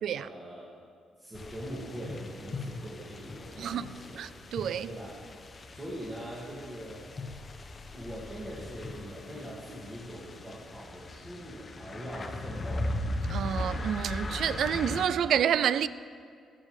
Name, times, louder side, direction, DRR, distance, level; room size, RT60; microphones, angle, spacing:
voice 1, 0.1-0.7 1.2-4.2 4.9-5.2 5.7-7.1 7.9-12.9, equal, 15° right, 2.3 m, -42 dB
sound 1, 1.3-15.1, left 2 dB, 35° left, 0.9 m, -38 dB
voice 2, 3.6-3.9 4.1-4.9 13.3-15.9, right 9 dB, 70° right, 0.3 m, -28 dB
13.5 x 7.5 x 4.9 m
cardioid pair, 90°, 0 cm